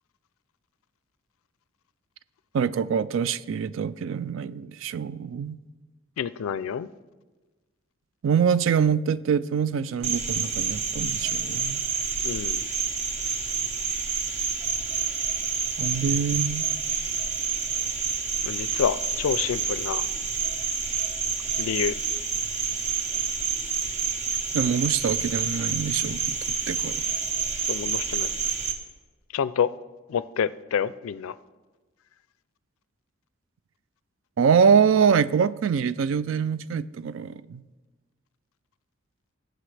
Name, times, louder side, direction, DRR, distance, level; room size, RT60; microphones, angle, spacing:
voice 1, 2.5-5.6 8.2-11.8 15.8-16.7 24.5-26.4 26.7-27.0 34.4-37.6, right 6 dB, 70° right, 0.3 m, -24 dB
voice 2, 6.2-6.9 12.2-12.7 18.4-20.0 21.6-22.0 27.7-28.3 29.3-29.7 30.1-31.3, left 7 dB, 90° left, 0.4 m, -28 dB
Cricket, 10.0-28.7, right 5 dB, 35° right, 1.0 m, -28 dB
19.0 x 7.9 x 3.3 m
head